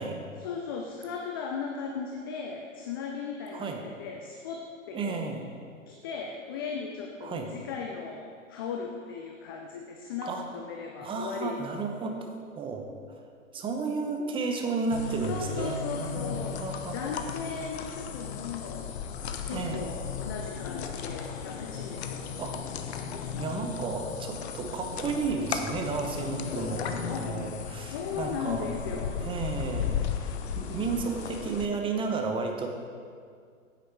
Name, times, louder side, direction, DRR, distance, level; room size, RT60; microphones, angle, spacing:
voice 1, 0.4-5.4 5.9-11.6 15.3-16.7 16.9-18.9 19.4-22.3 27.1-27.4 27.8-29.2, left 5 dB, 20° left, 2 dB, 0.3 m, -37 dB
voice 2, 3.5-3.8 4.9-5.5 7.2-7.5 10.2-10.5 11.0-12.9 13.5-17.0 19.5-19.8 22.4-22.6 23.4-28.7 29.2-30.0 30.5-32.7, right 4 dB, 15° right, 4 dB, 0.8 m, -32 dB
sound 1, 14.9-31.7, left 7 dB, 50° left, 0.9 m, -35 dB
9.3 x 8.3 x 4.5 m, 2.2 s
figure-of-eight pair, 115°, 40 cm